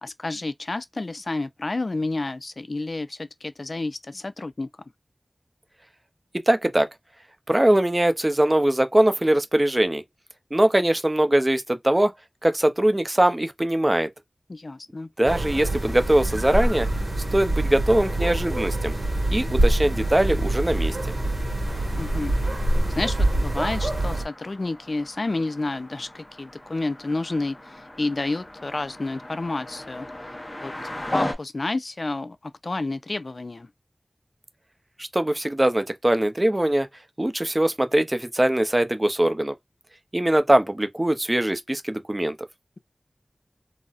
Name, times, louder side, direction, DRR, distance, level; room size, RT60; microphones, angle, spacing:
voice 1, 0.0-4.7 14.5-15.1 21.9-22.4 23.0-30.3 30.6-30.7 31.1-33.7, left 2 dB, 60° left, 0.4 m, -30 dB
voice 2, 6.5-6.9 7.5-10.0 10.5-12.1 12.4-14.1 15.2-16.9 17.3-18.9 19.3-21.0 35.0-36.9 37.2-39.5 40.1-42.4, right 1 dB, 25° right, 0.5 m, -21 dB
sound 1, 15.2-24.2, right 1 dB, 85° right, 1.5 m, -25 dB
sound 2, 21.7-31.3, left 1 dB, 30° left, 0.8 m, -37 dB
4.0 x 2.0 x 2.3 m
wide cardioid pair, 65°, 0 cm